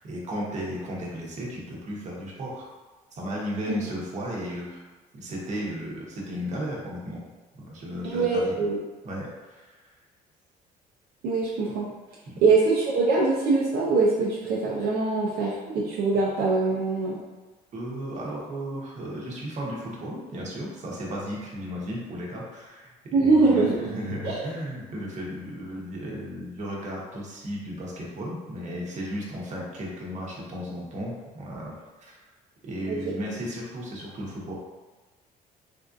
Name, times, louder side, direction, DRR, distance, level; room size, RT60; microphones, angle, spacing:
voice 1, 0.0-2.7 3.1-4.9 5.1-7.2 7.6-8.5 9.0-9.9 12.3-12.4 17.7-32.2 32.6-34.5, equal, 45° right, -4 dB, 0.9 m, -35 dB
voice 2, 8.1-8.8 11.2-11.9 12.4-17.2 23.1-24.5 32.9-33.0, right 3 dB, 75° right, -5 dB, 0.6 m, -23 dB
3.5 x 2.5 x 2.5 m, 1.2 s
cardioid pair, 110°, 17 cm